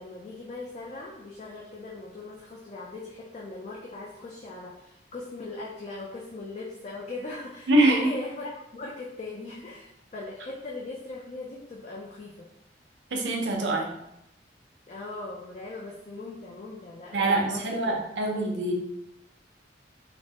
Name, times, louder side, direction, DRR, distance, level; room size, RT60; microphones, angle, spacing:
voice 1, 0.0-12.5 14.9-18.1 18.3-18.4, left 2 dB, 40° left, -3 dB, 0.3 m, -39 dB
voice 2, 7.7-8.0 13.1-13.9 17.1-18.7, right 1 dB, 85° right, 1 dB, 0.6 m, -24 dB
3.2 x 2.0 x 2.7 m, 0.83 s
head